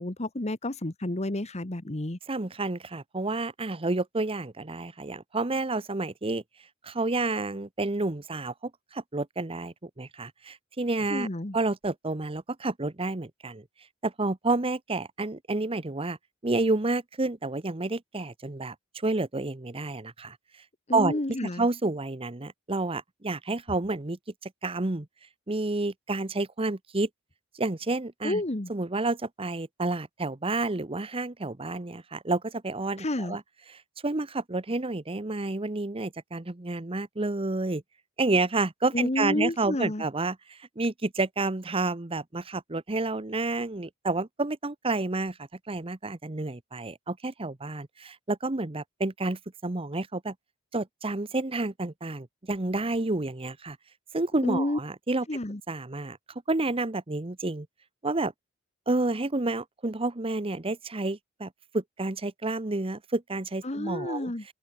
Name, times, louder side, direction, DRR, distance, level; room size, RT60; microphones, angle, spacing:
voice 1, 0.0-2.2 11.1-11.6 20.9-21.7 28.2-28.7 33.0-33.4 38.9-40.0 54.4-54.8 55.3-55.6 63.6-64.4, left 1 dB, 35° left, 1.4 m, -30 dB
voice 2, 2.3-6.4 6.8-11.3 11.5-13.6 14.0-16.2 16.4-18.7 19.0-20.4 20.9-21.2 21.6-25.1 25.5-27.1 27.5-28.4 28.7-33.4 34.0-37.8 38.2-50.3 50.7-53.8 54.1-55.2 55.7-56.2 56.5-57.7 58.0-58.3 58.9-64.3, right 2 dB, 30° right, 1.0 m, -30 dB
open air
head